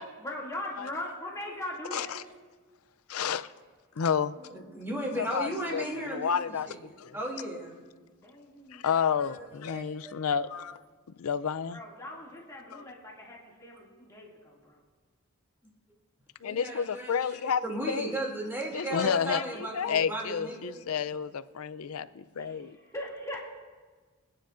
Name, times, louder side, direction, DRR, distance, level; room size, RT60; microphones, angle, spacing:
voice 1, 0.0-2.2 8.2-8.9 11.7-14.8 22.4-23.4, left 1 dB, 15° left, 2.3 m, -40 dB
voice 2, 1.9-2.2 3.1-3.5 4.0-4.6 5.2-7.2 8.7-10.8 11.2-11.8 12.7-12.9 16.4-17.6 17.9-18.2 18.7-22.8, left 7 dB, 70° left, 0.5 m, -30 dB
voice 3, 4.5-6.3 6.7-6.8 7.1-7.7 9.3-9.4 9.7-10.1 10.5-10.6 16.4-17.2 17.6-20.8, right 1 dB, 10° right, 2.7 m, -35 dB
26.5 x 9.9 x 2.6 m
head